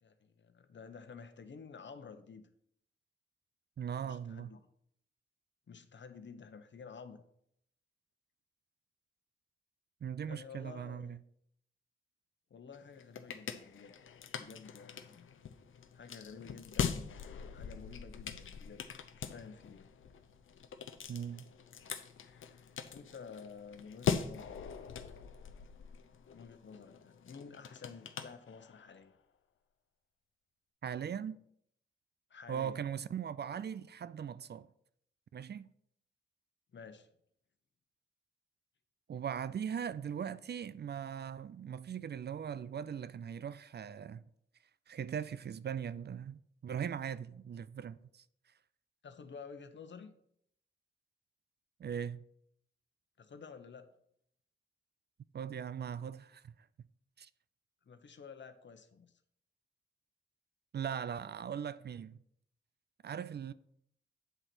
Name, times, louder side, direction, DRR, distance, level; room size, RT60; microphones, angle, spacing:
voice 1, 0.0-2.4 4.0-4.6 5.7-7.2 10.3-11.2 12.5-13.9 14.3-15.3 15.9-19.9 22.9-24.6 26.3-29.1 32.3-33.1 36.7-37.1 49.0-50.1 53.2-53.9 57.9-59.1, left 5 dB, 65° left, 0.9 m, -51 dB
voice 2, 3.8-4.5 10.0-11.2 21.1-21.4 30.8-31.4 32.5-34.7 35.3-35.7 39.1-44.2 44.9-48.2 51.8-52.2 55.3-56.5 57.2-57.3 60.7-62.2 63.0-63.5, right 8 dB, 55° right, 0.4 m, -39 dB
sound 1, 12.7-29.0, left 7 dB, 85° left, 0.6 m, -42 dB
8.0 x 4.0 x 6.1 m
cardioid pair, 55°, 20 cm